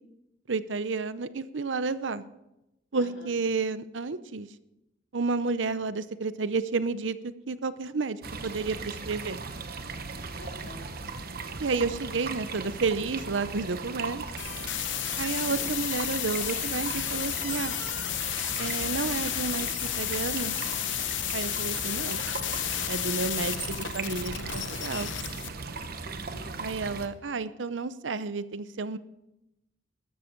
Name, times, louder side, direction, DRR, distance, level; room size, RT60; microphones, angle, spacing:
voice 1, 0.5-2.2 2.9-4.5 5.1-9.4 11.6-14.2 15.2-17.7 18.6-20.6 21.3-22.2 22.9-25.1 26.6-29.0, right 4 dB, 90° right, 14 dB, 0.7 m, -31 dB
voice 2, 2.9-3.4 10.3-10.9 15.5-15.7 26.0-26.5, equal, 70° left, 0 dB, 3.4 m, -48 dB
sound 1, 8.2-27.1, right 4 dB, 55° right, 1.0 m, -38 dB
sound 2, 14.4-25.5, left 12 dB, 90° left, 0.9 m, -32 dB
13.5 x 13.0 x 4.6 m, 0.90 s
head